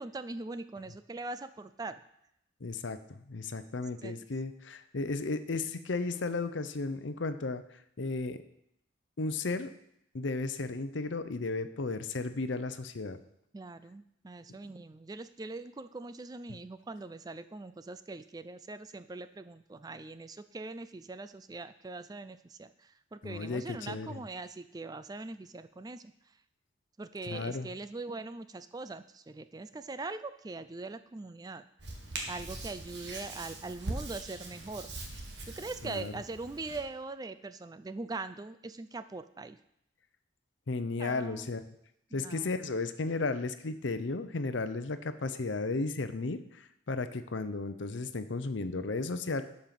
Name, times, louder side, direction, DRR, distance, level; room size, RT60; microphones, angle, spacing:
voice 1, 0.0-2.0 4.0-4.2 13.5-26.1 27.0-31.6 32.3-34.9 35.5-39.6 41.0-41.5 42.1-42.6, right 3 dB, 20° right, 12 dB, 0.3 m, -42 dB
voice 2, 2.6-7.6 8.0-8.4 9.2-9.7 10.1-13.2 23.2-24.2 27.3-27.7 35.8-36.1 40.7-41.6 42.1-49.4, left 3 dB, 70° left, 11 dB, 0.7 m, -34 dB
Hands, 31.8-36.8, right 2 dB, 60° right, 1.8 m, -42 dB
12.0 x 5.5 x 5.9 m, 0.76 s
head